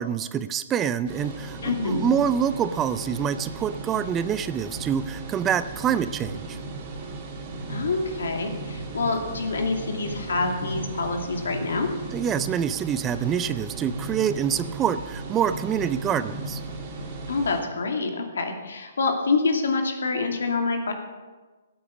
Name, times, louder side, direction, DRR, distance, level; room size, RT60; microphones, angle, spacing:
voice 1, 0.0-6.6 12.1-16.6, right 8 dB, 15° right, 14 dB, 0.4 m, -26 dB
sound 1, 1.1-17.6, right 2 dB, 30° right, 2.7 m, -36 dB
voice 2, 1.6-2.0 7.7-11.9 17.3-20.9, left 3 dB, 90° left, 3 dB, 2.5 m, -26 dB
16.0 x 8.6 x 7.0 m, 1.3 s
hypercardioid pair, 165°, 0 cm